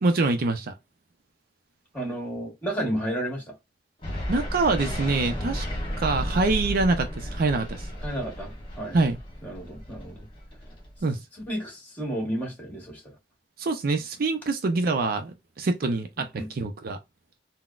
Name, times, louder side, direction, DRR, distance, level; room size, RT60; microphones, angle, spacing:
voice 1, 0.0-0.7 4.3-5.7 6.0-7.9 8.9-9.2 11.0-11.2 13.6-17.0, right 3 dB, 55° right, 0.5 m, -25 dB
voice 2, 1.9-3.5 8.0-9.1 9.4-10.3 11.3-13.1 16.4-16.5, right 1 dB, 10° left, 1.6 m, -32 dB
sound 1, 4.0-11.0, equal, 30° left, 1.2 m, -33 dB
3.9 x 2.1 x 2.4 m
head